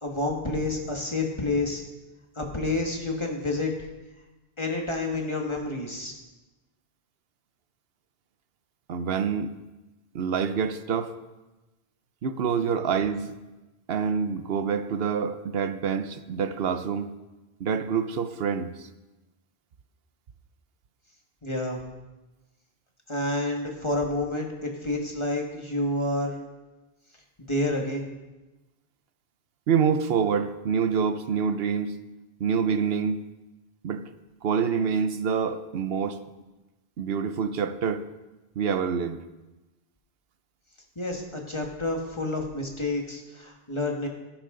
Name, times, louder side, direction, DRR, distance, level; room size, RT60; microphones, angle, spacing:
voice 1, 0.0-1.8 2.4-3.7 4.6-6.1 21.4-21.8 23.1-26.4 27.5-28.1 41.0-44.1, left 2 dB, 30° left, 1 dB, 1.8 m, -29 dB
voice 2, 8.9-9.5 10.1-11.1 12.2-13.3 13.9-17.1 17.6-18.9 29.7-32.0 32.4-33.2 33.8-34.0 34.4-36.2 37.0-38.0 38.6-39.2, right 6 dB, 70° right, 11 dB, 1.0 m, -26 dB
17.0 x 10.5 x 3.9 m, 1.1 s
omnidirectional pair, 1.0 m